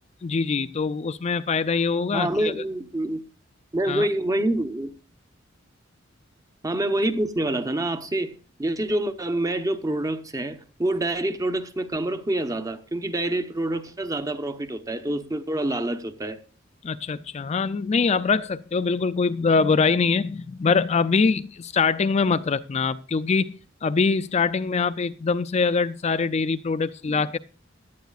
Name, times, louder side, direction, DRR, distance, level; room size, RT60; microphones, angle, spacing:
voice 1, 0.2-2.5 3.9-4.1 16.8-27.4, left 4 dB, 35° left, 0.4 m, -23 dB
voice 2, 2.1-3.2 3.7-4.9 6.6-16.4 27.0-27.3, right 1 dB, 20° right, 0.8 m, -27 dB
17.0 x 11.5 x 2.4 m
head